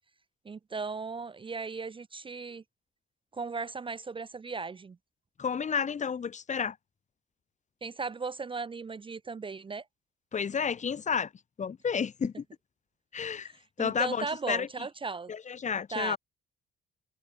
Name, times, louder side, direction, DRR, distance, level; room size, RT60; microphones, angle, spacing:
voice 1, 0.4-2.6 3.3-5.0 7.8-9.8 13.8-15.3 15.9-16.2, right 4 dB, 25° right, 0.6 m, -36 dB
voice 2, 5.4-6.8 10.3-11.3 11.6-12.4 13.1-13.5 13.8-14.7 15.3-16.2, left 6 dB, 35° left, 1.0 m, -31 dB
cardioid pair, 105°, 21 cm